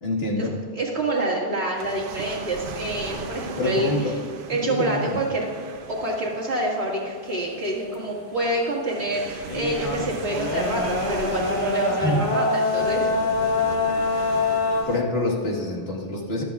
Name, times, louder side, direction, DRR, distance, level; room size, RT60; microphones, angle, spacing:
voice 1, 0.0-0.5 3.6-4.1 4.7-5.2 12.0-12.3 14.9-16.4, left 1 dB, 75° left, -1 dB, 1.9 m, -26 dB
voice 2, 0.7-4.1 4.5-5.5 5.9-13.1, right 1 dB, 80° right, -4 dB, 2.3 m, -27 dB
sound 1, 1.8-15.0, right 5 dB, 60° right, 0.9 m, -38 dB
sound 2, 9.5-14.8, left 3 dB, 50° left, 1.1 m, -25 dB
23.0 x 8.1 x 2.4 m, 2.2 s
omnidirectional pair, 1.1 m